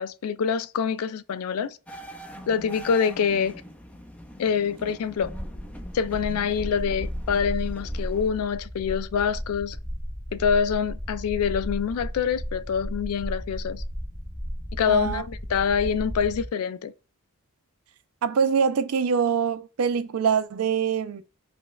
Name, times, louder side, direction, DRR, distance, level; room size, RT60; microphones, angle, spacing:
voice 1, 0.0-1.8 2.5-3.5 4.4-5.3 5.9-9.8 10.3-13.8 14.8-16.9, left 7 dB, 85° left, 0.3 m, -25 dB
sound 1, 1.9-8.3, equal, 5° left, 0.3 m, -43 dB
sound 2, 5.2-16.5, equal, 25° left, 1.2 m, -34 dB
voice 2, 14.9-15.2 18.2-21.2, right 6 dB, 80° right, 0.4 m, -24 dB
5.1 x 2.2 x 2.3 m
head